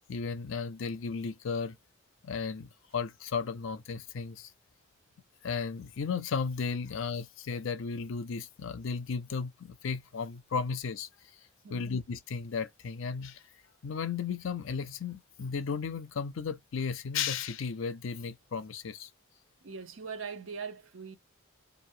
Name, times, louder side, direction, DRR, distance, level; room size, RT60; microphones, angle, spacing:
voice 1, 0.1-1.8 2.2-4.5 5.4-11.1 11.7-13.4 13.8-19.1, left 5 dB, 65° left, 0.5 m, -34 dB
voice 2, 19.6-21.2, right 5 dB, 65° right, 0.6 m, -41 dB
2.5 x 2.0 x 3.0 m
head